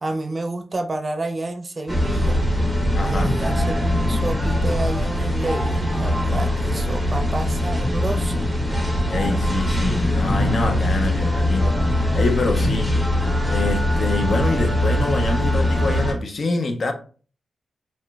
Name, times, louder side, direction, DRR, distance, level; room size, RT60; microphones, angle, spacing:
voice 1, 0.0-2.4 3.0-8.5, right 2 dB, 40° right, 0.5 m, -29 dB
sound 1, 1.9-16.1, left 1 dB, 10° left, 1.0 m, -21 dB
voice 2, 2.9-3.3 6.3-6.4 9.1-16.9, left 3 dB, 60° left, 0.5 m, -26 dB
3.0 x 3.0 x 2.2 m
cardioid pair, 65°, 0 cm